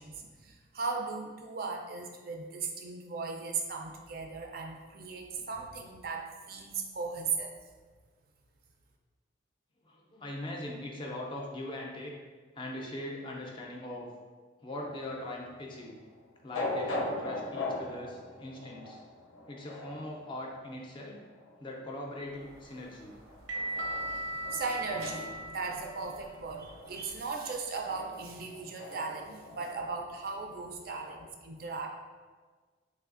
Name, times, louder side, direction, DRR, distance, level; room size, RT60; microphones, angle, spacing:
voice 1, 0.0-7.5 24.1-24.2 24.5-31.9, right 4 dB, 50° right, 2 dB, 0.4 m, -37 dB
voice 2, 9.8-12.2 12.5-14.1 14.6-16.0 16.4-19.0 19.5-21.2 21.6-23.1 23.6-23.7, left 1 dB, 25° left, -1 dB, 0.4 m, -41 dB
sound 1, 14.8-31.3, left 2 dB, 80° left, 0.5 m, -41 dB
sound 2, 22.4-27.2, right 1 dB, 85° right, 0.7 m, -39 dB
3.3 x 3.1 x 2.4 m, 1.4 s
head